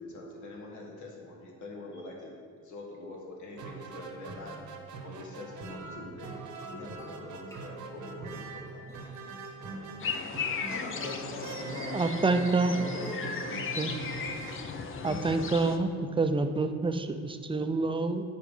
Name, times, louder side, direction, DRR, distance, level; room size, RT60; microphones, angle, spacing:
voice 1, 0.0-2.3 2.6-4.6 5.0-6.4 6.7-8.8, left 2 dB, 75° left, -1 dB, 1.9 m, -44 dB
sound 1, 3.5-15.4, right 5 dB, 70° right, 1.0 m, -43 dB
sound 2, 6.2-15.9, right 2 dB, 10° left, 1.3 m, -47 dB
sound 3, 10.0-15.8, left 6 dB, 45° left, 0.7 m, -36 dB
voice 2, 10.3-12.2 12.7-13.7, left 2 dB, 60° left, -2 dB, 2.0 m, -41 dB
voice 3, 11.9-12.7 13.8-13.9 15.0-18.2, right 3 dB, 15° right, 8 dB, 0.5 m, -27 dB
9.8 x 4.5 x 5.4 m, 2.1 s
cardioid pair, 90°, 30 cm